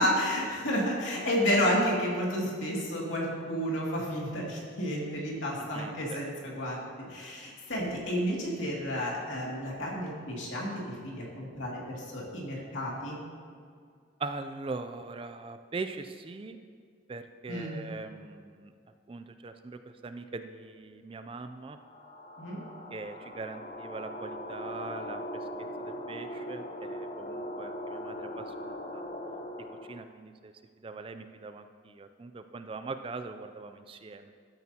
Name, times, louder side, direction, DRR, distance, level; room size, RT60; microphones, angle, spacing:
voice 1, 0.0-6.8 7.1-13.2 17.5-17.8 22.4-22.6, equal, 80° left, -3 dB, 2.4 m, -31 dB
voice 2, 5.7-6.3 14.2-16.6 17.1-18.7 19.1-21.8 22.9-25.5 25.8-29.0 29.9-30.5 30.8-34.3, right 3 dB, 25° right, 9 dB, 0.3 m, -41 dB
sound 1, 21.7-30.1, left 1 dB, 30° left, 0.6 m, -40 dB
13.0 x 8.3 x 2.8 m, 2.1 s
head